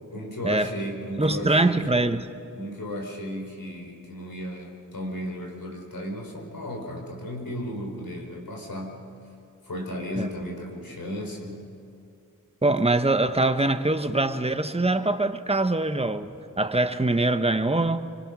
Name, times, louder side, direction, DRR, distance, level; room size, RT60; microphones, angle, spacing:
voice 1, 0.1-1.9 2.5-9.0 9.6-11.7, equal, 80° left, 1 dB, 4.8 m, -34 dB
voice 2, 1.2-2.3 10.2-10.3 12.6-16.3 16.6-18.1, right 2 dB, 15° right, 9 dB, 1.2 m, -23 dB
26.0 x 25.0 x 6.3 m, 2.6 s
wide cardioid pair, 55°, 34 cm